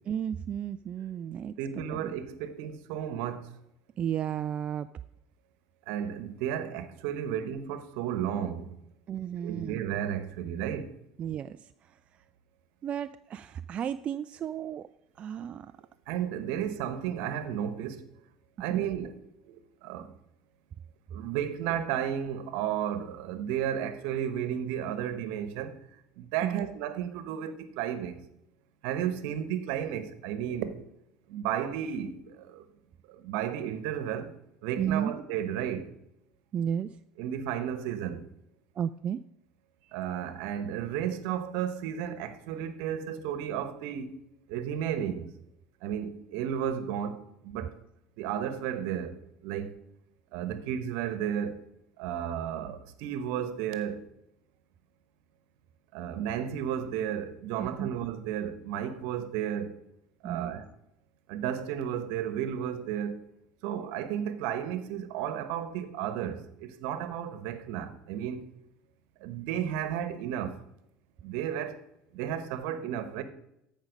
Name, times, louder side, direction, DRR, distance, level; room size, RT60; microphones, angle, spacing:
voice 1, 0.1-1.6 1.9-2.1 4.0-4.9 9.1-9.8 11.2-12.0 12.8-14.9 15.2-15.7 16.6-16.7 18.7-18.8 26.4-26.7 34.8-35.1 36.5-37.0 38.8-39.2 57.6-57.9 60.2-60.5, right 9 dB, 40° right, 0.3 m, -33 dB
voice 2, 1.6-3.5 5.9-8.8 9.4-10.9 16.1-18.1 18.6-20.1 21.1-25.8 26.2-28.2 28.8-30.7 31.3-32.7 33.1-34.3 34.6-35.9 37.2-38.2 39.9-44.1 44.5-45.3 45.8-47.8 48.2-49.8 50.3-51.6 52.0-54.1 55.9-59.8 60.2-60.7 61.3-63.3 63.6-68.4 69.2-70.6 71.2-71.8 72.1-73.2, right 9 dB, 70° right, 1.1 m, -33 dB
13.5 x 5.3 x 5.2 m
hypercardioid pair, 85°, 3 cm